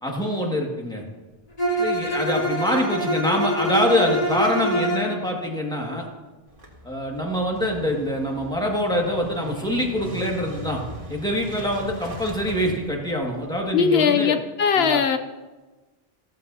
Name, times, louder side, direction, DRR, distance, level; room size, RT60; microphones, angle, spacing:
voice 1, 0.0-1.0 1.8-6.1 6.8-10.8 11.1-14.3 14.7-15.0, equal, 5° left, -1 dB, 1.9 m, -25 dB
Bowed string instrument, 1.6-5.1, equal, 40° left, 2.1 m, -25 dB
Motorcycle / Engine starting, 6.5-13.7, right 1 dB, 60° right, 2.1 m, -39 dB
voice 2, 13.7-15.2, left 6 dB, 85° left, 9 dB, 0.9 m, -20 dB
15.0 x 14.5 x 2.8 m, 1.2 s
omnidirectional pair, 1.0 m